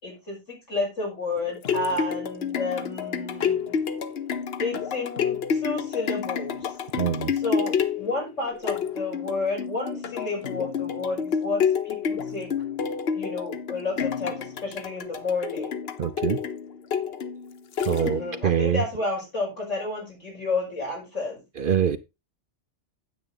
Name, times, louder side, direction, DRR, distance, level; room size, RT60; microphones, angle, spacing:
voice 1, 0.0-3.8 4.6-6.6 7.4-12.5 13.1-15.7 17.9-21.4, left 3 dB, 75° left, 6.3 m, -31 dB
sound 1, 1.4-18.5 19.0-19.1, left 7 dB, 55° left, 1.0 m, -29 dB
voice 2, 6.9-7.3 16.0-16.4 17.9-18.8 21.6-22.0, right 9 dB, 55° right, 0.7 m, -24 dB
9.5 x 7.9 x 3.8 m
omnidirectional pair, 1.3 m